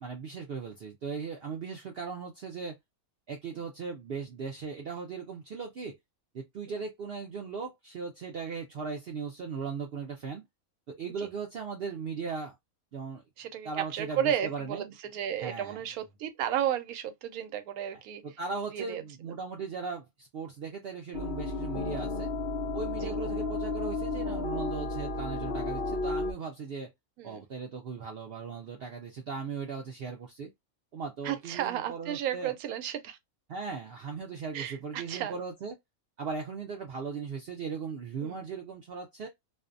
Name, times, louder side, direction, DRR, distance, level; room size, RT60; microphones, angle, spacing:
voice 1, 0.0-2.8 3.3-6.0 6.3-10.4 10.9-12.6 12.9-13.2 13.6-14.9 15.4-15.8 17.9-22.3 22.7-26.9 27.2-30.5 30.9-32.5 33.5-35.8 36.2-39.3, right 5 dB, 65° right, 0.6 m, -38 dB
voice 2, 13.4-18.2 18.7-19.0 23.0-23.1 27.2-27.4 31.2-33.2 34.5-35.4 38.2-38.5, right 10 dB, 85° right, 1.1 m, -33 dB
sound 1, 21.1-26.3, left 3 dB, 65° left, 0.6 m, -33 dB
2.5 x 2.1 x 2.4 m
omnidirectional pair, 1.5 m